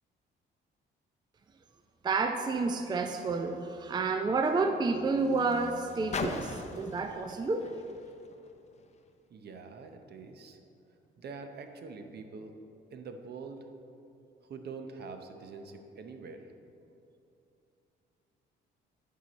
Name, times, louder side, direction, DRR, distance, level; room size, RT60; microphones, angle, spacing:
voice 1, 2.0-7.7, right 3 dB, 20° right, 6 dB, 0.4 m, -30 dB
Car, 2.5-9.1 9.9-10.0, left 4 dB, 35° left, 0.6 m, -43 dB
voice 2, 9.3-10.6 11.2-12.5 12.9-13.6 14.4-16.4, right 4 dB, 55° right, 6 dB, 0.7 m, -44 dB
11.0 x 4.7 x 4.1 m, 2.7 s
cardioid pair, 90°, 20 cm